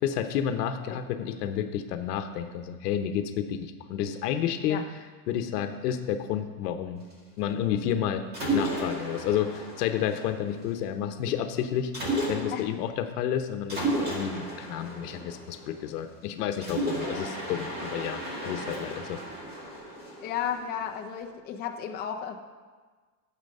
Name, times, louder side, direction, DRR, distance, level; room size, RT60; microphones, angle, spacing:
voice 1, 0.0-4.8 5.3-7.0 7.4-8.2 8.5-11.9 12.3-19.2, left 9 dB, 70° left, 7 dB, 1.0 m, -30 dB
Mechanisms, 8.3-10.8 11.9-12.8 13.7-16.0 16.6-20.8, right 1 dB, 20° right, 2.0 m, -33 dB
voice 2, 20.2-22.4, left 8 dB, 20° left, 2 dB, 0.6 m, -33 dB
12.0 x 7.6 x 5.4 m, 1.4 s
supercardioid pair, 165°, 49 cm